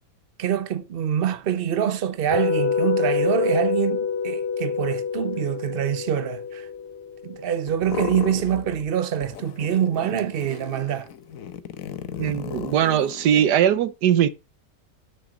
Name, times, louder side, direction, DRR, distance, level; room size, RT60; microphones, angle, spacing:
voice 1, 0.4-6.7 7.2-11.1, right 9 dB, 45° right, 0.8 m, -25 dB
sound 1, 2.3-8.4, left 6 dB, 15° right, 2.7 m, -27 dB
sound 2, 7.7-8.9 9.2-13.5, left 8 dB, 60° left, 1.1 m, -35 dB
voice 2, 12.2-14.3, right 10 dB, 75° right, 1.4 m, -20 dB
8.4 x 6.6 x 4.9 m
omnidirectional pair, 1.9 m